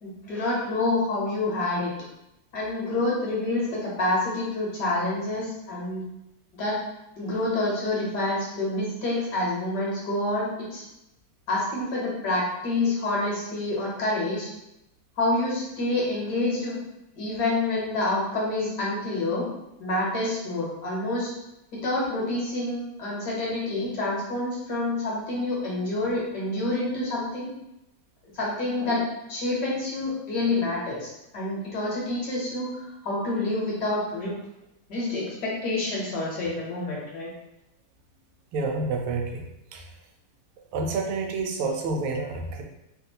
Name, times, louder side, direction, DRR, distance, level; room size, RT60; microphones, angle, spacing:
voice 1, 0.0-1.9 2.5-6.0 6.6-6.8 7.2-10.8 11.5-14.5 15.2-16.8 17.2-19.5 19.8-21.3 21.7-27.5 28.3-34.3 34.9-37.3, left 2 dB, 60° left, -5 dB, 1.4 m, -27 dB
voice 2, 38.5-39.4 39.7-39.8 40.7-42.6, right 3 dB, 90° right, 2 dB, 1.4 m, -28 dB
3.5 x 2.5 x 2.7 m, 0.87 s
omnidirectional pair, 2.3 m